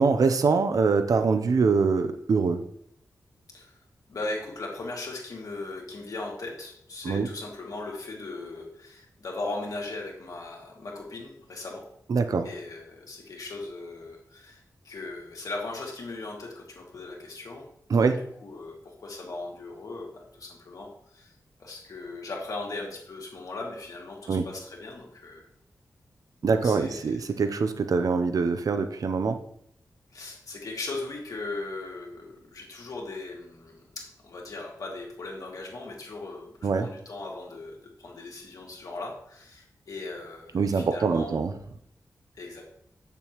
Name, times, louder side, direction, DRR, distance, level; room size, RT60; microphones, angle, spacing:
voice 1, 0.0-2.6 7.0-7.3 12.1-12.5 17.9-18.2 24.3-24.5 26.4-29.4 36.6-36.9 40.5-41.5, right 4 dB, 65° right, 8 dB, 0.6 m, -24 dB
voice 2, 4.1-11.9 12.4-17.7 18.4-21.3 21.6-25.4 26.4-27.2 30.1-41.5 42.4-42.6, left 2 dB, 65° left, -2 dB, 2.4 m, -38 dB
8.3 x 6.8 x 3.1 m, 0.69 s
wide cardioid pair, 110°, 6 cm